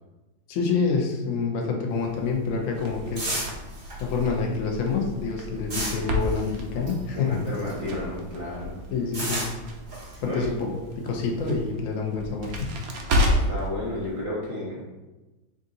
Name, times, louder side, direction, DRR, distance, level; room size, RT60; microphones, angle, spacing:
voice 1, 0.5-3.5 4.0-7.4 8.9-9.4 10.2-10.7 11.0-12.7, left 5 dB, 85° left, 1 dB, 0.7 m, -27 dB
sound 1, 1.9-8.0 8.3-11.7, right 1 dB, 35° right, 1.0 m, -35 dB
Crackle, 2.7-13.7, equal, 75° right, 0.8 m, -31 dB
voice 2, 7.1-8.8 10.3-10.5 13.3-14.8, left 1 dB, 55° left, -7 dB, 0.3 m, -32 dB
3.6 x 2.7 x 3.8 m, 1.1 s
omnidirectional pair, 2.2 m